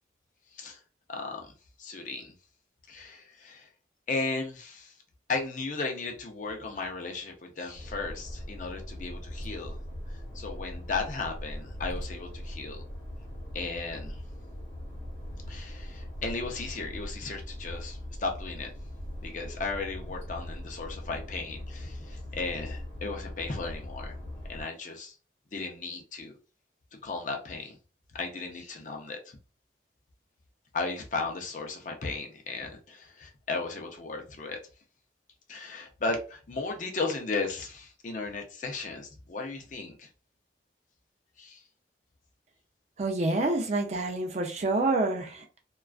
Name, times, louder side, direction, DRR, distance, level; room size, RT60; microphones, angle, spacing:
voice 1, 1.1-1.5 1.8-2.3 2.9-3.7 4.1-4.9 5.3-9.8 10.1-12.8 13.5-14.2 15.5-18.7 19.2-24.2 24.5-25.2 25.5-26.4 27.0-27.8 28.2-29.4 30.7-34.6 35.5-40.1 41.4-41.6, left 3 dB, 45° left, 0.5 m, -35 dB
sound 1, 7.7-24.6, left 1 dB, 75° left, 0.9 m, -40 dB
voice 2, 43.0-45.6, right 2 dB, 35° right, 0.4 m, -28 dB
2.3 x 2.2 x 2.3 m
head